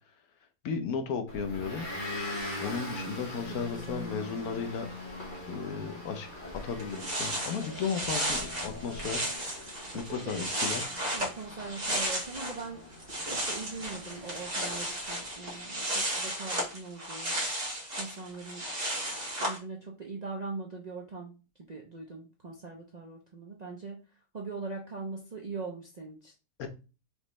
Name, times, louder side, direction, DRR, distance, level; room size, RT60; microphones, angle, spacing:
voice 1, 0.6-1.9 2.6-4.9 5.5-9.3 9.9-10.9 26.6-26.7, left 6 dB, 75° left, 7 dB, 1.2 m, -35 dB
Motor vehicle (road) / Engine, 1.3-15.5, left 1 dB, 35° left, 1.2 m, -42 dB
voice 2, 3.5-4.1 10.1-10.5 11.1-12.8 13.3-17.4 18.0-18.7 18.9-21.3 21.6-24.0 24.3-26.3, right 4 dB, 45° right, -1 dB, 0.5 m, -41 dB
sound 1, 6.5-6.6 6.8-12.6 12.9-19.6, right 1 dB, 25° right, 1.6 m, -34 dB
5.1 x 3.1 x 3.1 m, 0.32 s
omnidirectional pair, 1.6 m